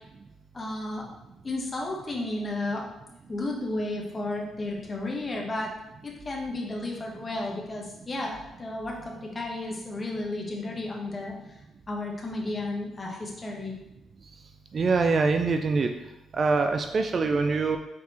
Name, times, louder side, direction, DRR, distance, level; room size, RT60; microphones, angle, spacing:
voice 1, 0.5-1.1 1.4-2.8 3.3-5.7 6.0-11.6 11.9-13.7, left 2 dB, 30° left, -1 dB, 1.1 m, -33 dB
voice 2, 14.7-15.9 16.3-17.8, right 4 dB, 45° right, 5 dB, 0.4 m, -24 dB
4.3 x 4.1 x 2.9 m, 0.93 s
cardioid pair, 90°, 0 cm